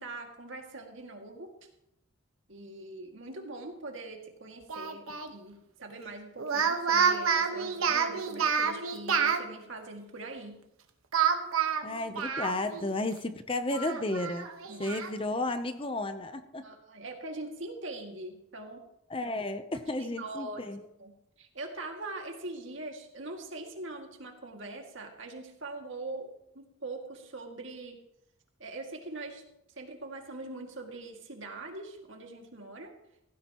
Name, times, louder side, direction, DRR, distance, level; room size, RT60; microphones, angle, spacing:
voice 1, 0.0-1.5 2.5-10.6 14.7-15.0 16.6-18.9 20.0-20.6 21.0-26.3 26.5-28.0 28.6-29.4 29.8-32.9, right 2 dB, 65° right, 2 dB, 2.2 m, -42 dB
Speech, 4.7-5.3 6.4-9.4 11.1-12.9 13.2-13.3 13.7-15.1, right 6 dB, 90° right, 1.3 m, -28 dB
voice 2, 11.8-14.5 14.8-16.7 19.1-20.9, left 2 dB, 25° left, 9 dB, 0.7 m, -33 dB
16.5 x 15.5 x 3.0 m, 0.83 s
head